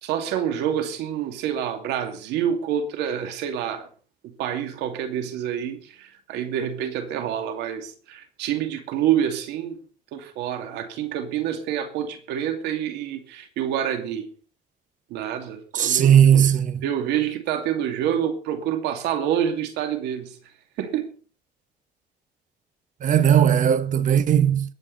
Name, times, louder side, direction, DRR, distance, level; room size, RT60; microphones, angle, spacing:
voice 1, 0.0-3.9 4.2-9.8 10.1-14.3 15.1-16.4 16.8-20.4 20.8-21.1, right 9 dB, 90° right, 2.6 m, -27 dB
voice 2, 15.7-16.8 23.0-24.7, right 9 dB, 50° right, 1.2 m, -17 dB
21.5 x 8.6 x 4.1 m
cardioid pair, 110°, 17 cm